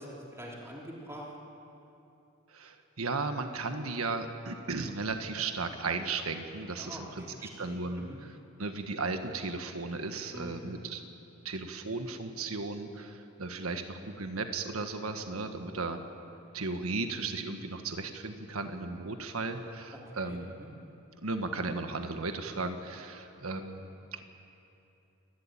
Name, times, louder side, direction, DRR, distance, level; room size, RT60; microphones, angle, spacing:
voice 1, 0.0-1.3 6.8-7.8 8.1-8.2 10.3-10.8 20.1-20.7, equal, 15° right, -3 dB, 3.4 m, -45 dB
voice 2, 2.5-7.2 7.6-11.0 11.4-16.0 16.5-20.5 21.2-24.2, right 3 dB, 85° right, 6 dB, 1.5 m, -35 dB
29.5 x 13.0 x 8.9 m, 2.8 s
head